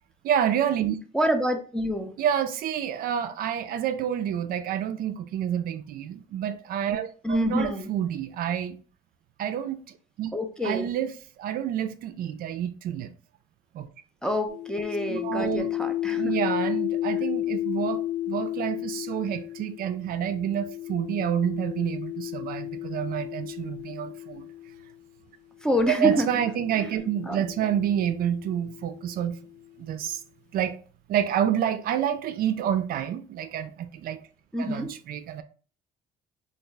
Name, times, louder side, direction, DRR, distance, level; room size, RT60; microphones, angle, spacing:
voice 1, 0.2-1.0 2.2-8.8 9.4-9.8 10.2-10.3 10.6-11.1 11.4-13.1 13.7-13.9 15.1-15.7 16.1-18.0 18.3-24.4 25.9-29.4 29.8-30.2 30.5-30.8 31.1-34.2 34.6-35.4, right 9 dB, 60° right, 0.4 m, -28 dB
voice 2, 1.1-2.1 7.2-7.9 10.3-10.9 14.2-16.3 25.6-26.3 26.7-26.9 27.2-27.4 34.5-34.9, equal, 5° left, 0.5 m, -27 dB
sound 1, 14.5-24.8 25.7-29.5, left 14 dB, 80° left, 1.3 m, -33 dB
3.4 x 2.3 x 3.2 m
cardioid pair, 110°, 17 cm